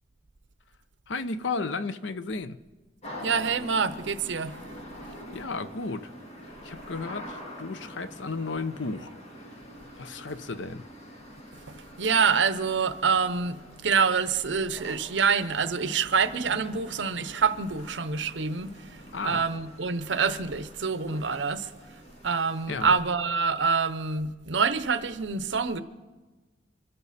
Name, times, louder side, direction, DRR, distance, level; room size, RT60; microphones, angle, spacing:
voice 1, 1.1-2.6 5.0-6.1 6.6-9.1 9.5-9.6 10.0-10.9 19.1-19.4 22.7-23.0, left 4 dB, 75° left, 0.7 m, -34 dB
sound 1, 3.0-22.7, equal, 35° left, 1.9 m, -46 dB
voice 2, 3.2-4.6 11.7-18.7 19.2-21.7 22.2-25.8, right 5 dB, 70° right, 0.7 m, -26 dB
25.0 x 13.0 x 4.2 m
head